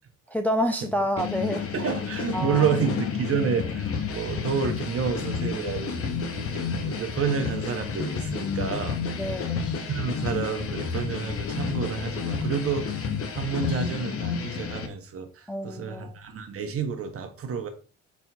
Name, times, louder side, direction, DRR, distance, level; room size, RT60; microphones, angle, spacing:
voice 1, 0.3-1.7 2.3-2.7 9.2-9.6 15.5-16.1, equal, 5° left, 0.4 m, -28 dB
sound 1, 1.2-14.9, left 6 dB, 50° left, 0.7 m, -30 dB
voice 2, 1.7-9.0 9.9-13.0 13.3-17.7, right 6 dB, 50° right, 0.8 m, -29 dB
4.3 x 4.3 x 2.2 m
cardioid pair, 90°, 30 cm